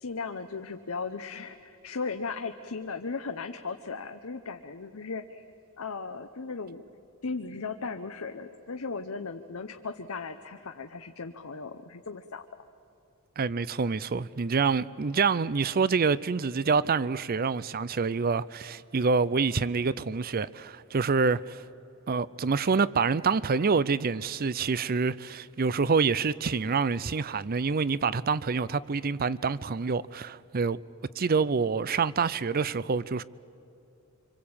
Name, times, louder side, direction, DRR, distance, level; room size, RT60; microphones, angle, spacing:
voice 1, 0.0-5.4 5.8-6.8 7.2-12.5, left 4 dB, 70° left, 0.9 m, -37 dB
voice 2, 13.4-21.6 22.1-30.8 31.2-33.2, right 5 dB, 45° right, 0.5 m, -27 dB
25.5 x 25.0 x 8.7 m
head